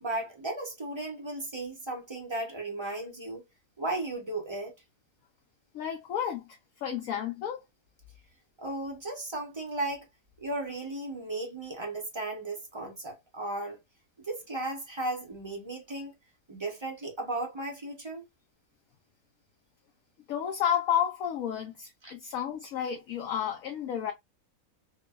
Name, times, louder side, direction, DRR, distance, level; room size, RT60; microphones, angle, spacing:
voice 1, 0.0-3.4 3.8-4.7 8.6-10.1 10.4-13.8 14.2-16.1 16.5-18.2 22.0-22.1, right 2 dB, 35° right, 0.4 m, -35 dB
voice 2, 5.7-6.5 6.8-7.6 20.3-24.1, left 9 dB, 65° left, 1.0 m, -31 dB
3.0 x 2.1 x 2.2 m
omnidirectional pair, 1.7 m